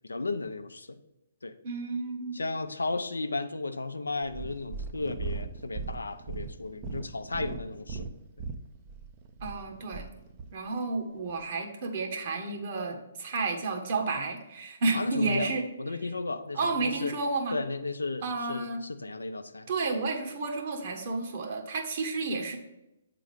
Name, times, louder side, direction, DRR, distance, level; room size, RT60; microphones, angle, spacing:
voice 1, 0.0-1.0 1.4-1.6 2.3-8.1 14.9-15.5 15.8-17.1 17.5-19.7, left 3 dB, 85° left, 10 dB, 0.5 m, -34 dB
voice 2, 1.6-2.4 9.4-10.1 10.5-15.7 16.5-17.6 18.2-18.8 19.7-22.6, right 3 dB, 50° right, 2 dB, 1.4 m, -31 dB
Purr, 4.2-10.5 11.3-11.4, right 4 dB, 30° right, 0.6 m, -39 dB
8.0 x 3.8 x 5.0 m, 0.92 s
figure-of-eight pair, 135°, 0 cm